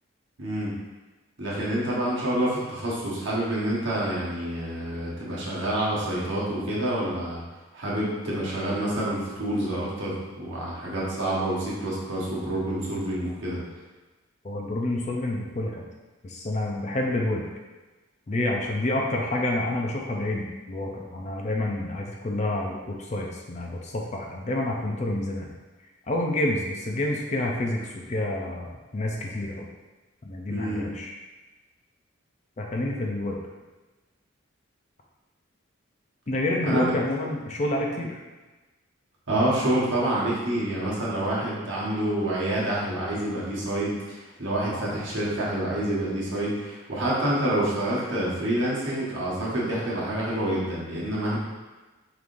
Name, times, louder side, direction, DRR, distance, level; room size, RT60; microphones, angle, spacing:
voice 1, 0.4-0.7 1.4-7.4 7.7-13.6 30.5-30.8 36.7-36.9 39.3-51.4, right 1 dB, 60° right, -6 dB, 1.2 m, -27 dB
voice 2, 14.4-15.8 16.2-17.4 18.3-25.5 26.1-29.7 30.2-31.1 32.6-33.4 36.3-38.2 44.7-44.8, left 1 dB, 35° left, 0 dB, 0.4 m, -28 dB
4.8 x 3.6 x 2.5 m, 1.2 s
head